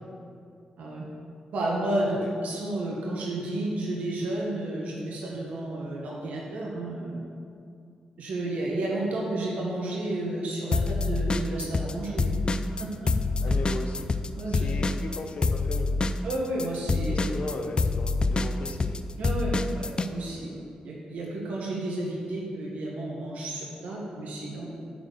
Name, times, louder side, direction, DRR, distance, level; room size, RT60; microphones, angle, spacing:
voice 1, 1.5-7.2 8.2-12.4 12.8-13.1 14.3-14.7 16.2-17.4 19.2-24.6, right 1 dB, 85° right, -4 dB, 1.6 m, -31 dB
sound 1, 10.7-11.9 12.2-20.1, left 3 dB, 40° left, 0.5 m, -26 dB
voice 2, 13.4-14.1 14.5-15.9 17.1-19.0, left 3 dB, 60° left, 3 dB, 0.8 m, -37 dB
11.0 x 4.4 x 6.8 m, 2.4 s
cardioid pair, 70°, 2 cm